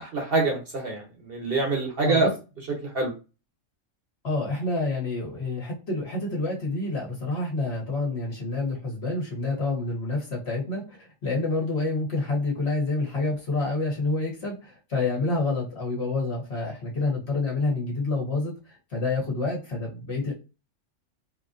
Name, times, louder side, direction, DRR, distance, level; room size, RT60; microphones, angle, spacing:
voice 1, 0.0-2.3 2.8-3.1, right 3 dB, 50° right, 1 dB, 1.1 m, -25 dB
voice 2, 4.2-20.3, left 2 dB, 50° left, -2 dB, 1.6 m, -28 dB
4.4 x 2.8 x 2.5 m, 0.31 s
omnidirectional pair, 1.4 m